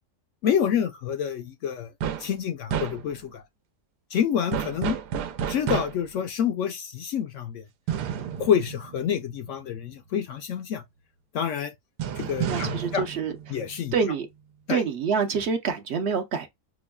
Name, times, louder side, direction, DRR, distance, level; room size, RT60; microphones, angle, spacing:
voice 1, 0.4-1.9 2.2-3.4 4.1-5.0 5.5-7.6 8.4-10.8 11.3-11.7 12.2-13.0 13.5-13.9 14.7-14.8, left 8 dB, 70° left, 0.7 m, -27 dB
sound 1, 2.0-2.3 2.7-3.3 4.5-6.2 7.9-9.7 12.0-14.1, right 8 dB, 85° right, 1.2 m, -31 dB
voice 2, 12.5-13.3 13.9-14.3 14.7-16.5, right 6 dB, 60° right, 0.7 m, -26 dB
6.0 x 2.2 x 2.2 m
omnidirectional pair, 1.7 m